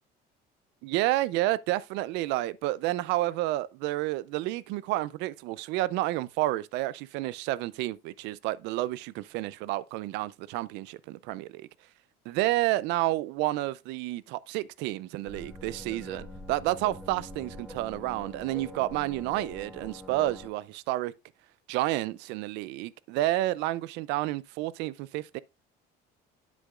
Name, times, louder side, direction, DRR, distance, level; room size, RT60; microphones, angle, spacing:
voice 1, 0.8-11.7 12.3-21.1 21.7-25.4, right 16 dB, 80° right, 0.5 m, -30 dB
sound 1, 15.3-20.5, left 1 dB, ahead, 2.5 m, -44 dB
9.7 x 8.4 x 2.4 m
cardioid pair, 115°, 18 cm